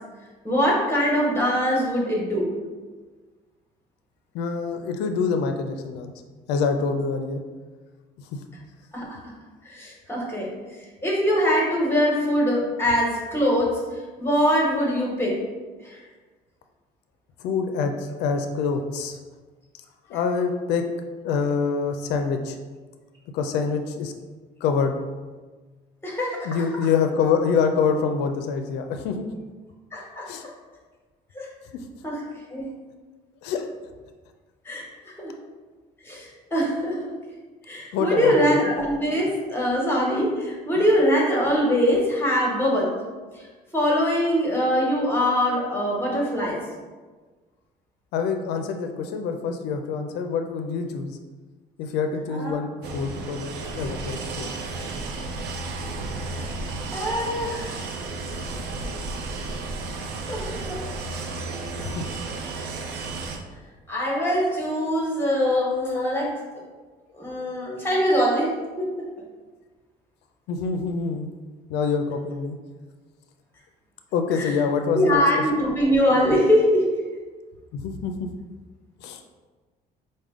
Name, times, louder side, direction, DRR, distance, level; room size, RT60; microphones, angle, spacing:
voice 1, 0.4-2.5 8.9-9.2 9.6-10.5 11.0-13.8 14.2-15.4 15.8-16.0 26.0-26.6 29.9-30.5 31.3-31.5 32.0-32.2 32.5-32.7 34.6-34.8 35.2-35.3 36.0-37.0 37.7-43.0 43.7-46.6 52.3-52.6 54.9-55.1 56.3-56.5 56.9-57.8 60.3-60.8 63.9-66.4 67.2-69.1 74.4-74.5 74.9-76.9, equal, 15° left, -3 dB, 1.2 m, -23 dB
voice 2, 4.3-6.1 6.5-7.4 8.3-8.4 17.4-19.2 20.1-20.8 21.2-22.6 23.3-24.1 24.6-24.9 26.4-29.3 30.3-30.4 33.4-33.7 37.9-38.8 40.8-40.9 48.1-51.2 51.8-54.5 58.4-58.5 61.8-62.0 70.5-71.3 71.7-72.6 74.1-75.2 77.7-78.3 79.0-79.2, left 5 dB, 85° left, 6 dB, 0.4 m, -26 dB
sound 1, 52.8-63.4, right 3 dB, 75° right, 0.5 m, -33 dB
4.9 x 2.1 x 3.6 m, 1.4 s
cardioid pair, 110°, 17 cm